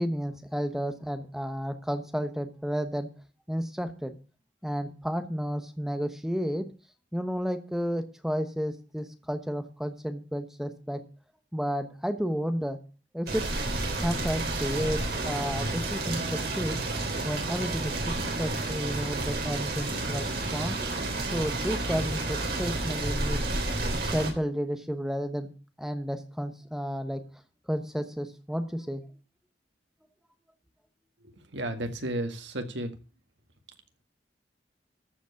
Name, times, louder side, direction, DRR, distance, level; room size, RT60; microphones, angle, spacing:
voice 1, 0.0-3.1 3.5-4.1 4.6-6.7 7.1-11.0 11.5-12.8 13.1-13.4 14.0-16.8 17.2-20.8 21.3-23.4 23.9-25.5 25.8-27.2 27.7-29.0, equal, 5° right, 8 dB, 1.0 m, -32 dB
sound 1, 13.3-24.3, right 2 dB, 60° right, 3.4 m, -30 dB
voice 2, 31.5-32.9, right 1 dB, 85° right, 6 dB, 1.9 m, -32 dB
14.0 x 5.2 x 8.2 m, 0.36 s
head